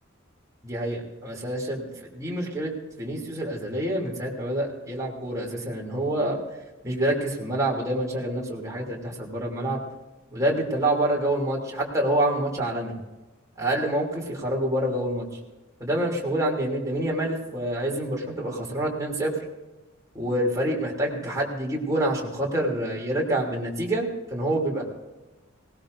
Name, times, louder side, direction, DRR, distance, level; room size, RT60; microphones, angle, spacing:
voice 1, 0.6-1.9 2.1-6.4 6.8-9.8 10.3-12.9 13.6-15.3 15.8-19.3 20.1-24.8, right 1 dB, 15° right, -3 dB, 3.1 m, -27 dB
19.5 x 18.0 x 2.7 m, 1.1 s
head